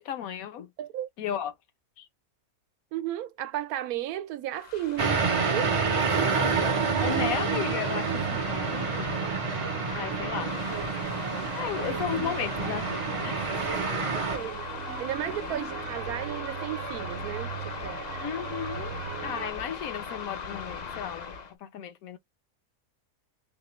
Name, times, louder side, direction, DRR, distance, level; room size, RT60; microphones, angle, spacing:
voice 1, 0.0-0.7 1.2-1.5 2.0-2.1 7.0-9.2 9.9-10.6 11.5-13.4 13.9-14.1 18.2-19.0 19.2-22.2, left 9 dB, 75° left, 1.1 m, -35 dB
voice 2, 0.8-1.1 2.9-5.7 13.7-14.6 15.0-18.0, right 12 dB, 90° right, 1.1 m, -34 dB
sound 1, 4.5-21.5, left 5 dB, 55° left, 0.4 m, -40 dB
sound 2, 5.0-14.4, right 5 dB, 40° right, 0.4 m, -28 dB
sound 3, 5.5-19.5, right 9 dB, 60° right, 0.9 m, -39 dB
4.1 x 2.0 x 3.0 m
omnidirectional pair, 1.5 m